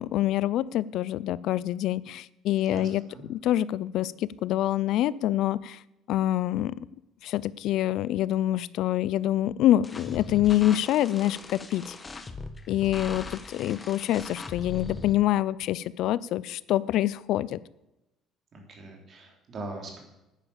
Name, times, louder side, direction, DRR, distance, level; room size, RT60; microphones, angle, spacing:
voice 1, 0.0-3.0 3.3-5.8 6.1-6.7 7.2-12.0 12.7-17.6, left 13 dB, 65° left, 20 dB, 0.4 m, -26 dB
voice 2, 2.7-3.3 18.5-20.0, right 2 dB, 40° right, 2 dB, 3.4 m, -41 dB
sound 1, 9.8-15.1, left 3 dB, 20° left, 1.0 m, -40 dB
9.8 x 9.8 x 7.1 m, 0.94 s
cardioid pair, 140°, 0 cm